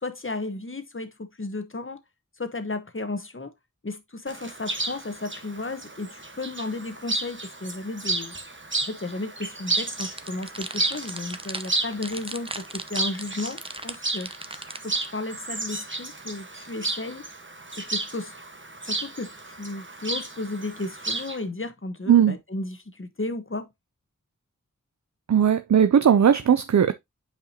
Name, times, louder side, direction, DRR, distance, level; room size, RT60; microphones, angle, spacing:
voice 1, 0.0-2.0 2.4-3.5 3.8-8.3 8.8-14.3 14.8-17.3 17.8-18.3 18.8-23.7, left 2 dB, 40° left, 1.1 m, -34 dB
Chirp tweet, 4.3-21.4, right 2 dB, 35° right, 1.2 m, -33 dB
sound 1, 10.0-15.1, right 2 dB, 15° right, 0.7 m, -37 dB
voice 2, 25.3-26.9, right 8 dB, 60° right, 0.5 m, -18 dB
8.7 x 4.9 x 2.7 m
wide cardioid pair, 45°, 33 cm